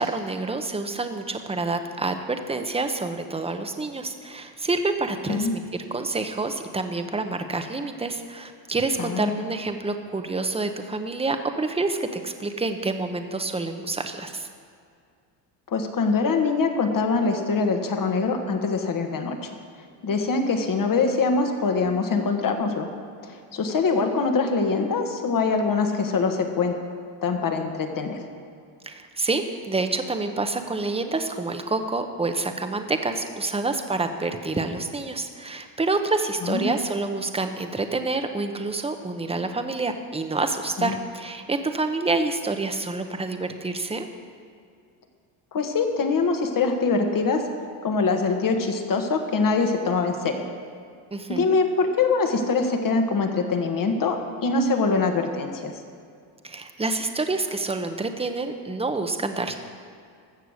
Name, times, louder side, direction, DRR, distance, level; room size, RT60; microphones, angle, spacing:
voice 1, 0.0-14.5 28.8-44.1 51.1-51.6 56.4-59.6, right 3 dB, 15° right, 7 dB, 1.0 m, -28 dB
voice 2, 9.0-9.4 15.7-19.5 20.0-22.9 23.2-26.8 27.2-28.2 36.4-36.7 40.8-40.9 45.5-47.5 47.8-50.4 51.3-55.8, left 4 dB, 45° left, 4 dB, 1.6 m, -23 dB
15.0 x 6.8 x 6.5 m, 2.2 s
cardioid pair, 90°, 45 cm